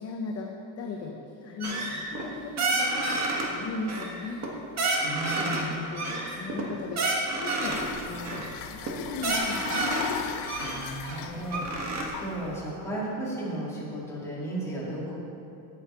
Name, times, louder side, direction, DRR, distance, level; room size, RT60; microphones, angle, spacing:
voice 1, 0.0-4.4 5.3-9.9, left 4 dB, 30° left, 0 dB, 0.7 m, -38 dB
sound 1, 1.6-2.3 2.6-3.5 3.9-4.5 4.8-5.6 5.9-7.9 8.3-8.5 8.8-8.9 9.2-10.1 10.5-12.0, right 2 dB, 35° right, 1.5 m, -29 dB
voice 2, 5.0-5.8 10.6-15.2, right 1 dB, 5° left, -8 dB, 2.5 m, -35 dB
sound 2, 7.6-12.7, left 9 dB, 90° left, 0.8 m, -38 dB
16.5 x 7.0 x 4.4 m, 2.7 s
cardioid pair, 175°, 47 cm